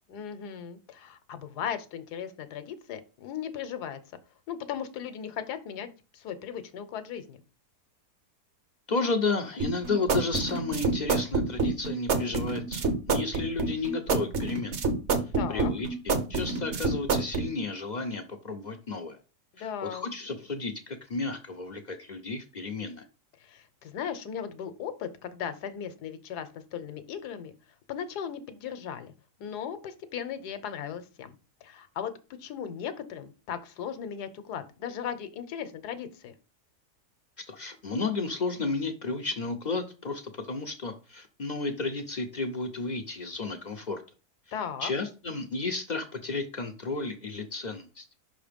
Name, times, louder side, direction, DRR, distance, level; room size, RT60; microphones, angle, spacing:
voice 1, 0.1-4.0 4.5-7.4 15.3-15.7 19.5-20.1 23.4-27.5 27.9-29.1 29.4-31.3 31.6-32.1 32.4-36.3 44.5-44.9, left 8 dB, 80° left, 11 dB, 1.3 m, -37 dB
voice 2, 8.9-14.8 15.5-19.2 19.6-23.0 37.5-44.0 44.8-48.0, left 3 dB, 55° left, 5 dB, 0.5 m, -32 dB
sound 1, 9.6-17.5, right 4 dB, 50° right, 1.0 m, -27 dB
5.8 x 3.8 x 5.1 m, 0.33 s
omnidirectional pair, 1.7 m